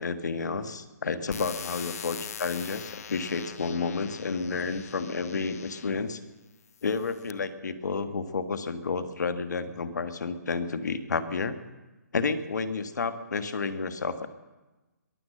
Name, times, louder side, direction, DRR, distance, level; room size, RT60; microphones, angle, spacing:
voice 1, 0.0-6.2 6.8-11.6 12.1-14.3, left 4 dB, 70° left, 11 dB, 1.4 m, -31 dB
sound 1, 1.3-6.0 6.7-7.3, left 8 dB, 55° left, 0.7 m, -42 dB
22.0 x 8.1 x 7.6 m, 1.1 s
hypercardioid pair, 150°, 10 cm